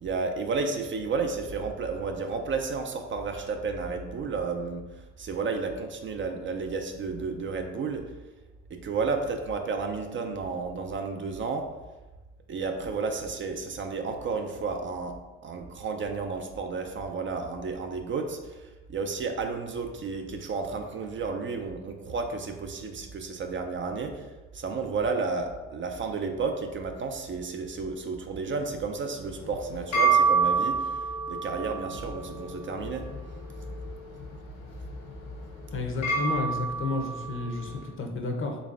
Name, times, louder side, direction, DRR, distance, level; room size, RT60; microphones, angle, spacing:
voice 1, 0.0-8.0 8.7-11.7 12.5-15.2 15.4-24.3 24.5-33.1, right 4 dB, 40° right, 5 dB, 0.4 m, -32 dB
sound 1, 29.3-37.8, right 4 dB, 85° left, 1.4 m, -29 dB
voice 2, 35.7-38.6, left 3 dB, 45° left, 3 dB, 0.6 m, -31 dB
4.0 x 3.2 x 2.4 m, 1.2 s
cardioid pair, 90°, 30 cm